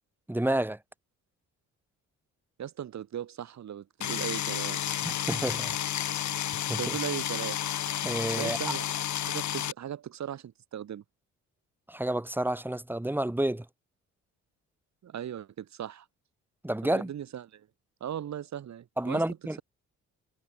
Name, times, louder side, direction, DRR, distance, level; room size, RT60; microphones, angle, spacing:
voice 1, 0.3-0.8 5.0-5.8 6.7-7.0 8.0-8.6 11.9-13.7 16.6-17.1 19.0-19.6, right 1 dB, 5° right, 2.5 m, -30 dB
voice 2, 2.6-4.9 6.8-7.6 8.4-8.9 9.2-11.0 15.0-16.1 16.8-17.7 18.0-19.2, right 10 dB, 65° right, 5.8 m, -38 dB
sound 1, 4.0-9.7, left 11 dB, 70° left, 5.1 m, -31 dB
cardioid pair, 90°, 30 cm